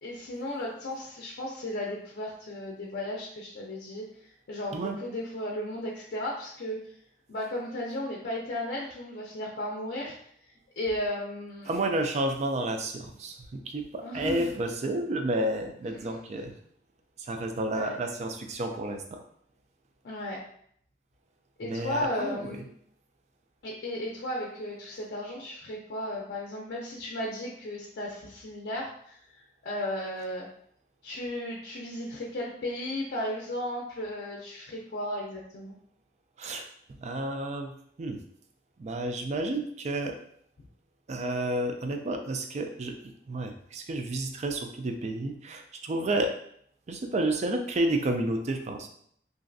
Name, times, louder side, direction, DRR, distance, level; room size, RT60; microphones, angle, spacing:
voice 1, 0.0-4.1 4.5-6.8 7.3-10.2 10.8-11.7 14.0-14.6 15.8-16.2 17.7-18.0 20.0-20.4 21.6-22.7 23.6-29.2 29.6-30.5 31.0-35.8, left 1 dB, 65° left, -3 dB, 0.5 m, -35 dB
voice 2, 11.7-16.5 17.2-19.2 21.6-22.6 36.4-36.7 37.0-37.7 38.0-38.2 38.8-40.2 41.1-46.3 46.9-48.9, right 1 dB, 40° right, 5 dB, 0.4 m, -31 dB
3.0 x 2.5 x 2.6 m, 0.66 s
head